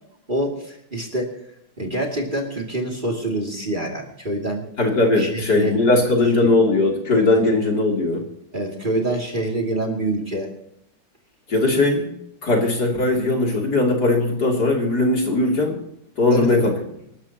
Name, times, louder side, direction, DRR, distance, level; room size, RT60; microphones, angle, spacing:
voice 1, 0.3-1.3 1.8-4.7 5.2-5.8 6.2-6.5 7.4-7.5 8.5-10.5 16.3-16.7, right 1 dB, 25° right, 0 dB, 2.6 m, -26 dB
voice 2, 4.8-8.2 11.5-12.1 12.4-15.8 16.2-16.7, left 2 dB, 55° left, 0 dB, 3.6 m, -19 dB
26.5 x 13.0 x 2.9 m, 0.77 s
omnidirectional pair, 2.1 m